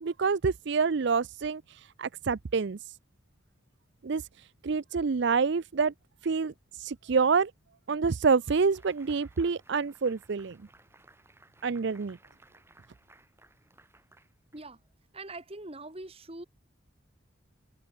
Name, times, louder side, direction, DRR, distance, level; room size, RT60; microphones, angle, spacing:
voice 1, 0.0-2.8 4.0-4.2 4.6-5.9 6.2-6.5 6.8-7.5 7.9-10.6 11.6-12.2, right 5 dB, 55° right, 0.5 m, -27 dB
sound 1, 8.5-15.0, right 2 dB, 10° right, 5.7 m, -60 dB
voice 2, 15.1-16.4, right 2 dB, 30° right, 1.8 m, -42 dB
head